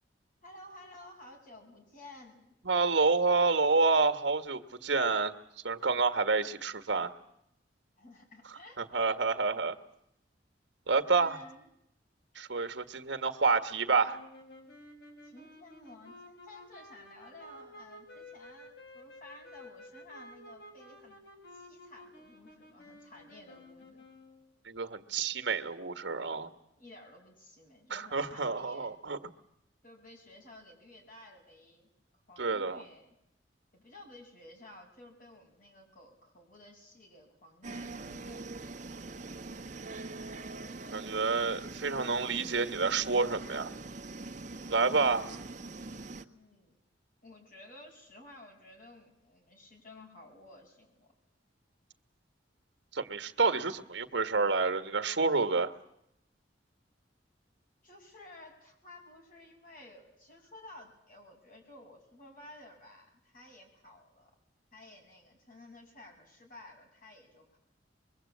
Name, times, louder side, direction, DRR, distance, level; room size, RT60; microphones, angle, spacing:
voice 1, 0.4-2.5 8.0-9.1 11.0-11.7 15.2-21.2 21.5-24.0 26.8-28.9 29.8-31.9 32.3-33.1 33.7-38.6 44.8-45.4 46.3-46.8 47.2-51.1 57.8-64.3 64.7-67.6, left 2 dB, 50° left, 1 dB, 7.7 m, -54 dB
voice 2, 2.6-5.3 5.6-7.1 8.8-9.7 10.9-11.4 12.3-14.2 24.6-26.5 27.9-29.2 32.4-32.8 40.9-43.7 44.7-45.2 52.9-55.7, right 4 dB, 75° right, 8 dB, 1.7 m, -28 dB
sound 1, 14.0-24.5, left 1 dB, 65° left, 6.1 m, -52 dB
sound 2, 37.6-46.2, right 3 dB, 45° right, 1.4 m, -43 dB
25.0 x 22.5 x 8.7 m, 0.77 s
head